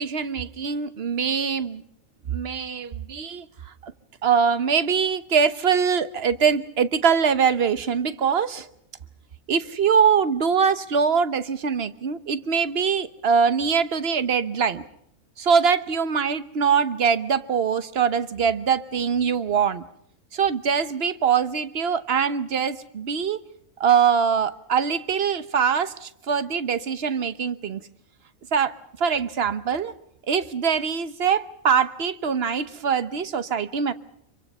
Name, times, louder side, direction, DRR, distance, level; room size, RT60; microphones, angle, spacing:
voice 1, 0.0-1.8 2.3-3.5 3.8-3.9 4.2-8.7 9.5-14.8 15.4-19.8 20.3-23.4 23.8-27.8 28.5-28.7 29.0-29.9 30.3-33.9, right 6 dB, 50° right, 13 dB, 1.2 m, -23 dB
26.0 x 24.0 x 5.5 m, 0.73 s
omnidirectional pair, 1.4 m